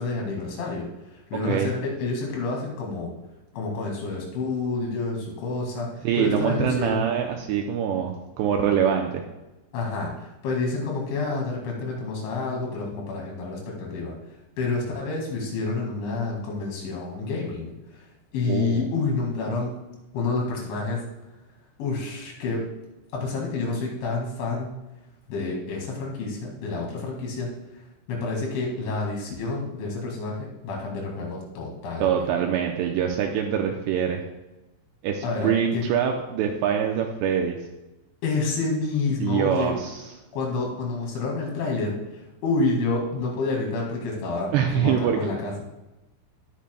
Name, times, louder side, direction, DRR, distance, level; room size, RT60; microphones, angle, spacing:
voice 1, 0.0-3.1 3.5-7.1 9.7-14.1 14.6-18.1 18.3-19.7 20.1-21.0 21.8-22.6 23.1-24.7 25.3-27.5 28.1-32.3 35.2-35.9 38.2-39.7 40.3-44.5 44.7-45.6, left 3 dB, 75° left, -2 dB, 4.3 m, -29 dB
voice 2, 6.0-9.2 18.5-18.8 32.0-34.2 35.0-37.6 39.2-40.0 44.5-45.2, right 8 dB, 85° right, 2 dB, 2.5 m, -24 dB
18.5 x 6.9 x 2.2 m, 1.0 s
omnidirectional pair, 5.5 m